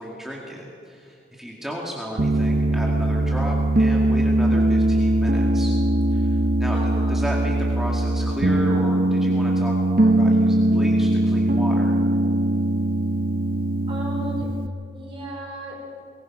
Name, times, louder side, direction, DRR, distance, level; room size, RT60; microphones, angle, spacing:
voice 1, 0.0-5.7 6.1-12.0, equal, ahead, -3 dB, 2.1 m, -34 dB
Piano, 2.2-14.7, right 1 dB, 50° right, 0.7 m, -21 dB
voice 2, 6.7-7.2 13.9-14.5 14.9-16.0, equal, 30° right, -2 dB, 4.8 m, -35 dB
23.0 x 20.0 x 6.0 m, 2.5 s
head